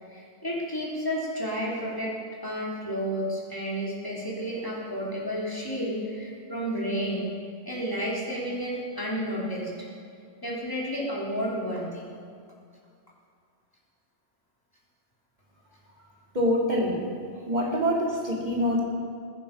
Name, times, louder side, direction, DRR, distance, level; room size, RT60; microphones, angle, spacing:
voice 1, 0.1-2.1 2.4-7.3 7.6-9.7 10.4-12.1, equal, 20° left, -6 dB, 3.2 m, -31 dB
voice 2, 16.3-17.0 17.5-18.8, equal, 40° right, -3 dB, 2.8 m, -25 dB
20.5 x 9.8 x 5.3 m, 2.2 s
omnidirectional pair, 1.2 m